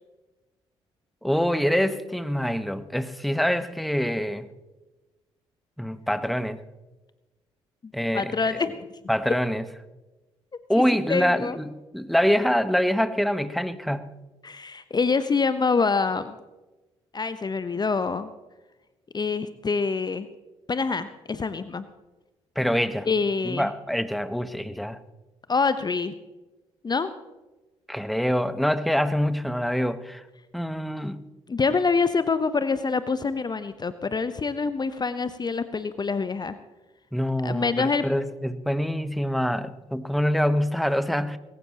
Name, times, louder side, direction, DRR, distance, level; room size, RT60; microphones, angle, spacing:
voice 1, 1.2-4.5 5.8-6.6 7.9-8.3 9.1-9.6 10.7-14.0 22.5-23.1 23.4-25.0 27.9-30.2 30.5-31.2 37.1-41.4, equal, ahead, 13 dB, 1.1 m, -25 dB
voice 2, 7.8-8.9 11.1-11.6 14.4-16.4 17.1-18.3 19.1-20.3 20.7-21.8 23.1-23.7 25.5-26.1 26.8-27.1 31.5-36.6 37.4-38.0, left 4 dB, 30° left, 13 dB, 0.9 m, -26 dB
21.0 x 18.0 x 3.0 m, 1.1 s
figure-of-eight pair, 40°, 15 cm